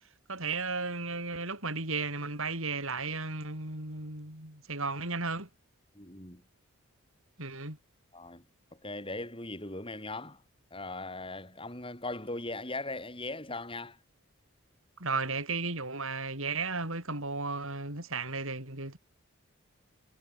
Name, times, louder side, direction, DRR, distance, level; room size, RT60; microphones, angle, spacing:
voice 1, 0.3-5.5 7.4-7.8 15.0-19.0, right 3 dB, 65° right, 7.7 m, -34 dB
voice 2, 5.9-6.4 8.1-8.4 8.8-10.4 10.7-14.0, left 2 dB, 25° left, 7.7 m, -39 dB
head